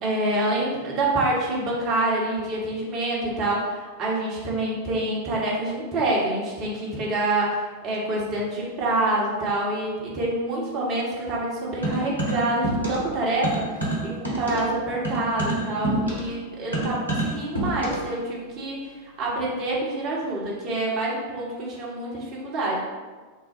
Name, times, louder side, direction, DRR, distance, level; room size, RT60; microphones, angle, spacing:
voice 1, 0.0-22.8, right 2 dB, 35° right, -4 dB, 1.1 m, -27 dB
sound 1, 11.8-13.1 13.4-18.2, right 1 dB, 90° right, 1.0 m, -27 dB
3.9 x 2.2 x 4.4 m, 1.4 s
figure-of-eight pair, 90°, 0 cm